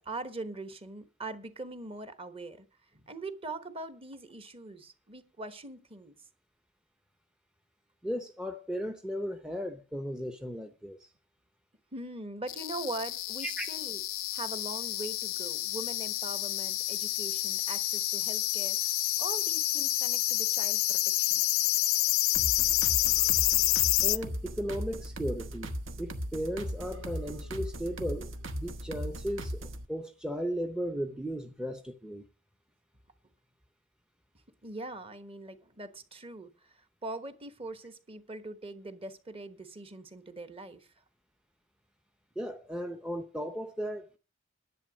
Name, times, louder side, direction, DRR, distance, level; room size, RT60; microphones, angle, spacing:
voice 1, 0.0-2.7 2.9-6.1 11.9-14.0 14.3-18.9 19.2-21.4 34.6-36.5 37.0-40.9, right 2 dB, 30° right, 1.2 m, -42 dB
voice 2, 8.0-11.1 13.4-13.7 24.0-32.3 42.4-44.2, equal, 5° right, 0.6 m, -36 dB
sound 1, 12.5-24.2, left 17 dB, 85° left, 0.5 m, -29 dB
sound 2, 22.3-29.9, equal, 70° right, 1.2 m, -38 dB
10.5 x 8.6 x 6.3 m
head